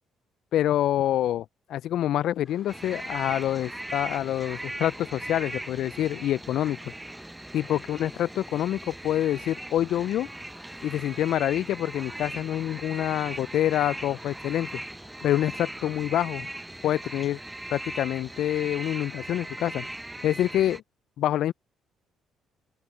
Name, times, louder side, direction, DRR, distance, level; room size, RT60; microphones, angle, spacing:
voice 1, 0.5-6.9 7.5-10.3 10.8-14.8 15.2-16.5 16.8-17.4 17.7-19.9 20.2-20.8 21.2-21.5, left 12 dB, 65° left, 0.6 m, -26 dB
sound 1, 2.4-16.2, left 2 dB, 15° left, 6.1 m, -54 dB
sound 2, 2.7-20.8, right 1 dB, 10° right, 1.0 m, -39 dB
open air
hypercardioid pair, 50°, 0 cm